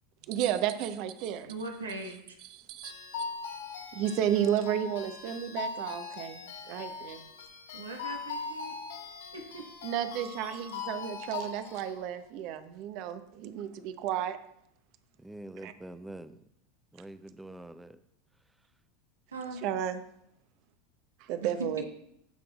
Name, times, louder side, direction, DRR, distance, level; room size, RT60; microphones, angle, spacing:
voice 1, 0.3-1.5 2.5-2.9 3.9-7.2 9.8-14.4 15.6-15.7 19.6-20.0 21.2-21.8, right 10 dB, 55° right, 11 dB, 0.8 m, -32 dB
voice 2, 1.5-2.4 7.7-8.8 9.3-9.6 19.3-19.6 21.4-21.8, right 2 dB, 85° right, 2 dB, 1.4 m, -39 dB
sound 1, 2.8-11.9, left 5 dB, 75° left, 3.3 m, -40 dB
voice 3, 15.2-16.4 16.9-18.0, right 1 dB, 5° right, 13 dB, 0.5 m, -45 dB
16.5 x 6.1 x 2.4 m, 0.76 s
hypercardioid pair, 85°, 0 cm